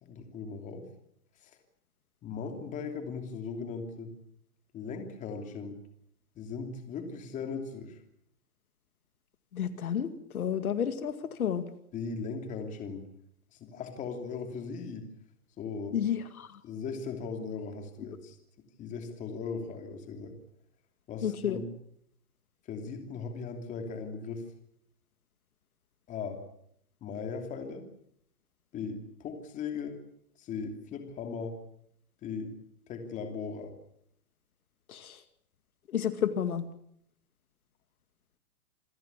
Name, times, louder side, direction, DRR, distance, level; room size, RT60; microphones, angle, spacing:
voice 1, 0.0-0.9 1.4-1.6 2.2-4.1 4.7-5.8 6.3-8.0 11.9-13.0 13.5-15.1 15.6-16.0 16.6-18.4 18.8-20.3 21.1-21.7 22.7-24.4 26.1-26.4 27.0-27.9 28.7-30.0 30.4-31.6 32.2-32.5 32.9-33.7, left 5 dB, 15° left, 5 dB, 3.0 m, -38 dB
voice 2, 9.5-11.6 15.9-16.5 21.2-21.6 34.9-35.2 35.9-36.6, left 8 dB, 70° left, 10 dB, 2.2 m, -31 dB
27.5 x 16.5 x 8.4 m, 0.70 s
hypercardioid pair, 155°, 45 cm